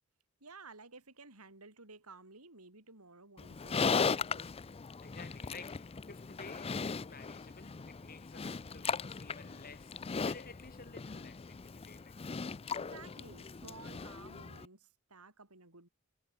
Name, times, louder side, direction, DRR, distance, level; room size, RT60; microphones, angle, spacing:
voice 1, 0.4-4.5 12.7-15.9, right 3 dB, 85° right, 6.0 m, -54 dB
Livestock farm animals working animals, 3.4-14.7, left 5 dB, 25° left, 0.5 m, -38 dB
voice 2, 5.0-12.2, left 4 dB, 40° left, 6.5 m, -53 dB
head